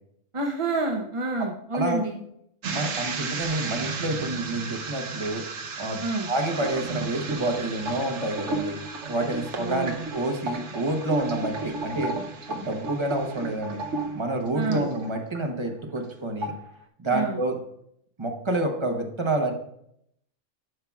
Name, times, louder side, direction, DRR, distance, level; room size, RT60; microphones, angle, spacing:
voice 1, 0.3-2.2 6.0-6.3 9.3-10.1 14.5-14.9 17.1-17.4, right 3 dB, 40° right, 1 dB, 0.4 m, -29 dB
sound 1, 2.6-15.4 15.8-16.1 16.4-16.8, right 3 dB, 65° right, 1.0 m, -33 dB
voice 2, 2.7-5.4 5.8-6.0 6.3-8.7 9.1-13.8 14.1-16.5 17.0-17.5 18.2-19.5, right 2 dB, 25° right, 3 dB, 0.9 m, -28 dB
11.0 x 5.7 x 2.4 m, 0.72 s
omnidirectional pair, 1.4 m